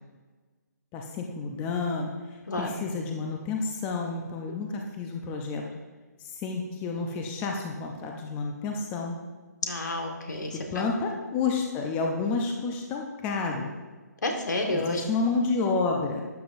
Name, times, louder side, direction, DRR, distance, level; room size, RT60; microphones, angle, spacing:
voice 1, 0.9-2.1 2.6-5.6 6.4-9.2 10.7-13.7 14.7-16.2, left 4 dB, 15° left, 2 dB, 0.7 m, -30 dB
voice 2, 9.6-10.8 14.2-15.0, left 2 dB, 75° left, 2 dB, 1.8 m, -30 dB
12.5 x 8.4 x 2.7 m, 1.4 s
figure-of-eight pair, 150°, 10 cm